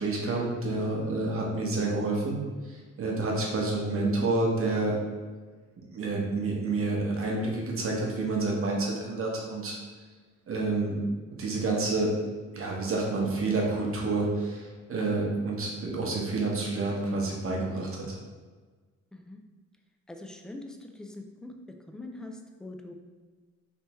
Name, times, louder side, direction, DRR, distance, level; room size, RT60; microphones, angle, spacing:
voice 1, 0.0-2.4 2.7-5.0 5.9-9.8 10.5-11.0 11.4-12.1 12.5-18.2, right 2 dB, 45° right, -2 dB, 1.0 m, -29 dB
voice 2, 20.1-21.5 21.9-22.9, left 2 dB, ahead, 4 dB, 0.3 m, -43 dB
3.4 x 3.1 x 3.0 m, 1.4 s
cardioid pair, 90°, 30 cm